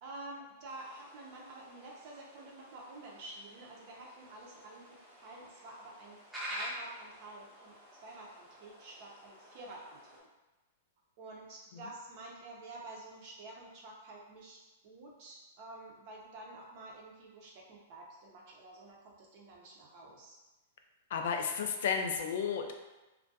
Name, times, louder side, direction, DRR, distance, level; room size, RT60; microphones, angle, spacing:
voice 1, 0.0-7.8 8.0-10.2 11.2-14.6 14.8-20.4, right 2 dB, 45° right, -2 dB, 0.6 m, -49 dB
sound 1, 0.7-10.2, equal, 5° right, 0.7 m, -48 dB
voice 2, 21.1-22.7, left 6 dB, 65° left, 4 dB, 0.3 m, -32 dB
2.4 x 2.1 x 2.7 m, 1.1 s
hypercardioid pair, 145°, 0 cm